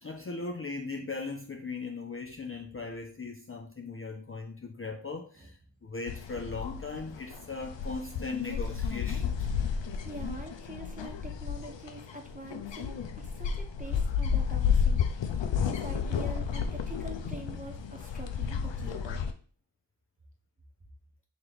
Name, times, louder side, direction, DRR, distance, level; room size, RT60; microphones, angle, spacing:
voice 1, 0.0-5.6 5.8-9.5 15.5-15.7, left 4 dB, 30° left, 2 dB, 0.5 m, -38 dB
sound 1, 6.1-19.3, left 7 dB, 75° left, 0.5 m, -32 dB
voice 2, 10.0-15.0 15.6-19.2, right 2 dB, 20° right, 2 dB, 0.9 m, -45 dB
3.1 x 3.0 x 3.9 m, 0.43 s
wide cardioid pair, 45°, 44 cm